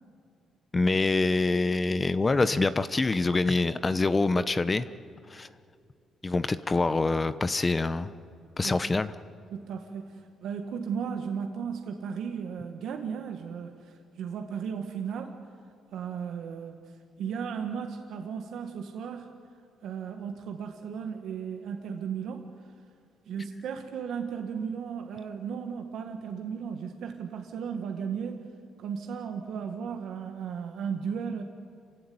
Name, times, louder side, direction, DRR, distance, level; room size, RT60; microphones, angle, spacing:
voice 1, 0.7-4.9 5.3-5.5 6.2-8.1 8.6-9.1, left 3 dB, 25° left, 13 dB, 0.8 m, -25 dB
voice 2, 9.5-15.4 15.9-19.3 19.8-22.5 23.3-28.4 28.8-31.4, right 7 dB, 75° right, 4 dB, 1.7 m, -35 dB
27.5 x 16.0 x 9.6 m, 2.4 s
cardioid pair, 90°, 0 cm